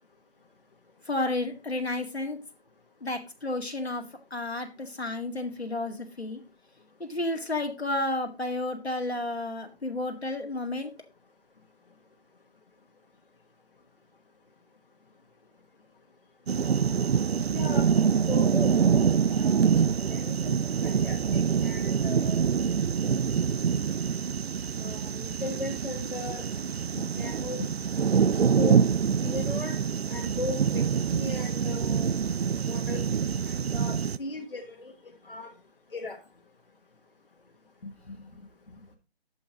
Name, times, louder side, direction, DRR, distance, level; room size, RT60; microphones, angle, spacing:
voice 1, 1.1-2.4 3.0-4.1 4.3-6.4 7.0-10.9 27.0-27.3 37.8-38.4 38.7-38.8, left 2 dB, 80° left, 3 dB, 2.0 m, -32 dB
sound 1, 16.5-34.2, right 7 dB, 75° right, 0.4 m, -25 dB
voice 2, 17.5-17.9 18.3-18.8 19.3-19.7 20.1-22.4 24.8-26.5 27.2-27.6 28.6-28.9 29.2-29.8 30.1-32.1 32.7-35.5 35.9-36.2, left 3 dB, 60° left, 2 dB, 1.6 m, -37 dB
13.5 x 5.5 x 2.9 m, 0.28 s
figure-of-eight pair, 155°, 32 cm